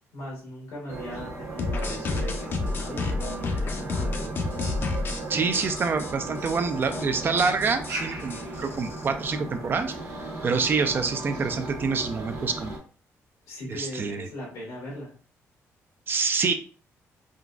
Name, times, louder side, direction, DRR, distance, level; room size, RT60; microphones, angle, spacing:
voice 1, 0.1-4.3 13.5-15.1, equal, 90° left, -6 dB, 1.5 m, -39 dB
sound 1, 0.9-12.8, right 2 dB, 65° right, 1.0 m, -36 dB
sound 2, 1.6-5.2 5.5-6.1 6.5-6.6 6.8-7.0 7.4-9.1, left 3 dB, 40° left, 0.5 m, -30 dB
voice 2, 5.3-10.0 10.4-12.7 13.7-14.3 16.1-16.5, right 5 dB, 40° right, 8 dB, 0.4 m, -26 dB
3.7 x 2.2 x 2.3 m, 0.40 s
cardioid pair, 105°, 6 cm